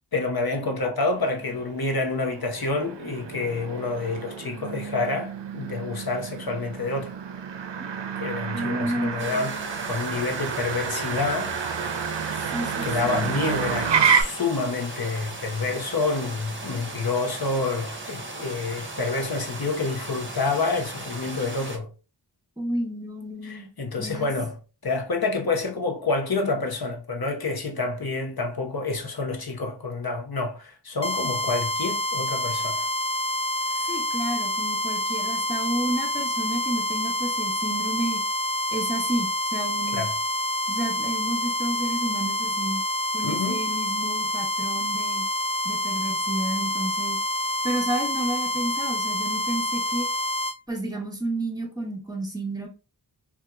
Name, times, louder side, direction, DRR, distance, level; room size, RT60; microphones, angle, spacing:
voice 1, 0.1-7.2 8.2-11.7 12.8-21.9 23.4-24.6 24.8-32.9 33.7-33.9 39.9-40.1 43.2-43.6, left 3 dB, 55° left, 0.8 m, -28 dB
Motor vehicle (road), 1.1-14.2, right 7 dB, 75° right, 0.5 m, -30 dB
voice 2, 8.5-9.9 12.5-13.3 22.6-23.7 24.0-24.3 33.9-38.2 38.7-40.0 40.7-42.8 43.1-45.2 45.6-47.2 47.6-50.1 50.7-52.7, right 1 dB, 10° right, 1.1 m, -31 dB
sound 1, 9.2-21.8, right 2 dB, 30° right, 0.8 m, -37 dB
sound 2, 31.0-50.6, left 1 dB, 15° left, 0.3 m, -27 dB
2.7 x 2.4 x 3.5 m
wide cardioid pair, 40°, 43 cm